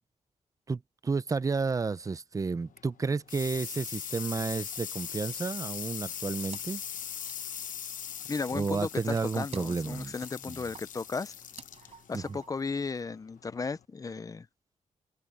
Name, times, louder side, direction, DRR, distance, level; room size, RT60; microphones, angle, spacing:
voice 1, 0.7-6.8 8.5-10.1 10.4-10.6 12.1-12.4, right 4 dB, 25° right, 0.5 m, -31 dB
sound 1, 2.6-13.8, left 8 dB, 70° left, 0.9 m, -41 dB
Wood, 6.5-6.9 7.1-12.7, right 6 dB, 50° right, 7.1 m, -53 dB
voice 2, 8.3-11.3 12.1-14.5, left 4 dB, 25° left, 0.5 m, -35 dB
wide cardioid pair, 150°, 14 cm